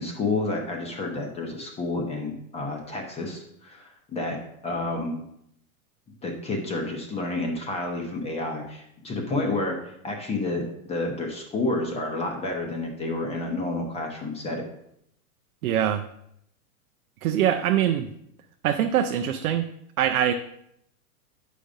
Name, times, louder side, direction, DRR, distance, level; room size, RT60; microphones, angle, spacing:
voice 1, 0.0-4.4 4.6-5.2 6.2-14.6, left 2 dB, 15° left, 2 dB, 0.6 m, -30 dB
voice 2, 15.6-16.0 17.2-18.1 18.6-19.6 20.0-20.3, right 10 dB, 80° right, 6 dB, 0.6 m, -23 dB
8.2 x 5.0 x 2.6 m, 0.75 s
hypercardioid pair, 135°, 44 cm